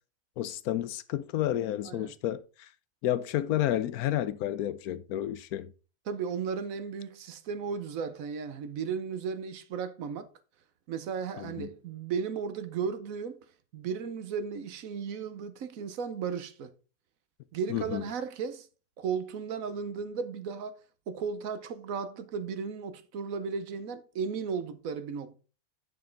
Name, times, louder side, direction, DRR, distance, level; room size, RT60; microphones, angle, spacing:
voice 1, 0.4-2.7 3.0-5.7 11.4-11.7 17.7-18.0, left 12 dB, 90° left, 1.1 m, -31 dB
voice 2, 6.1-10.3 10.9-13.4 13.7-16.7 17.5-18.7 19.0-20.7 21.1-25.4, right 6 dB, 70° right, 1.2 m, -35 dB
9.4 x 5.4 x 3.8 m
omnidirectional pair, 1.5 m